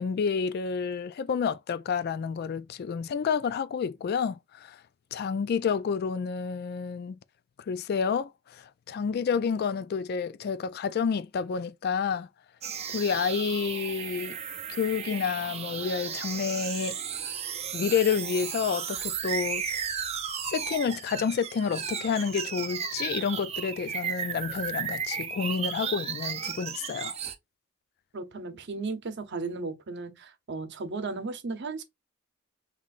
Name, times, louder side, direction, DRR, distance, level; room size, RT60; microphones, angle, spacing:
voice 1, 0.0-4.8 5.1-7.2 7.7-12.3 12.9-14.4 14.7-17.0 17.7-19.8 20.5-27.2, left 6 dB, 50° left, 0.3 m, -29 dB
sound 1, 12.6-27.3, right 7 dB, 30° right, 0.5 m, -34 dB
voice 2, 28.1-31.8, right 3 dB, 60° right, 0.8 m, -35 dB
5.7 x 3.1 x 2.5 m
head